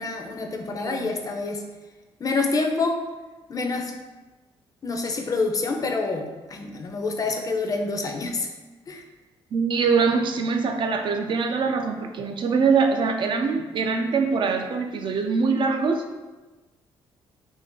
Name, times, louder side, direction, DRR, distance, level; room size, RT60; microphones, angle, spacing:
voice 1, 0.0-1.6 2.2-3.0 3.5-3.9 4.8-8.5 8.9-9.0, left 3 dB, 35° left, 3 dB, 0.4 m, -27 dB
voice 2, 0.8-1.1 9.5-16.1, right 5 dB, 50° right, 5 dB, 0.3 m, -23 dB
2.5 x 2.4 x 3.7 m, 1.2 s
cardioid pair, 95°, 10 cm